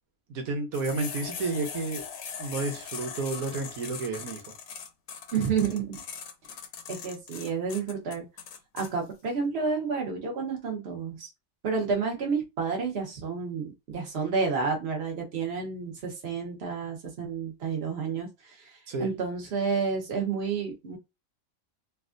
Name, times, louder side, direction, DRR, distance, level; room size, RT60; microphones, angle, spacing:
voice 1, 0.3-2.1 2.4-4.4 18.9-19.1, right 3 dB, 90° right, 1.2 m, -31 dB
sound 1, 0.7-8.9, left 7 dB, 80° left, 1.1 m, -40 dB
voice 2, 5.3-6.0 6.9-8.2 8.7-11.3 11.6-18.7 19.0-21.0, right 5 dB, 50° right, 1.2 m, -30 dB
3.3 x 2.3 x 2.5 m
omnidirectional pair, 1.5 m